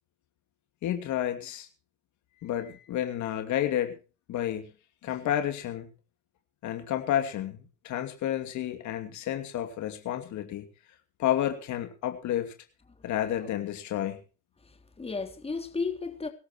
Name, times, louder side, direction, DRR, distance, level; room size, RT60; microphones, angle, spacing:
voice 1, 0.8-1.7 2.4-4.0 4.3-4.7 5.0-5.9 6.6-10.7 11.2-12.5 13.0-14.2, left 11 dB, 65° left, 2.7 m, -30 dB
voice 2, 14.6-16.3, left 4 dB, 20° left, 3.4 m, -34 dB
23.5 x 13.5 x 3.1 m
supercardioid pair, 95°, 31 cm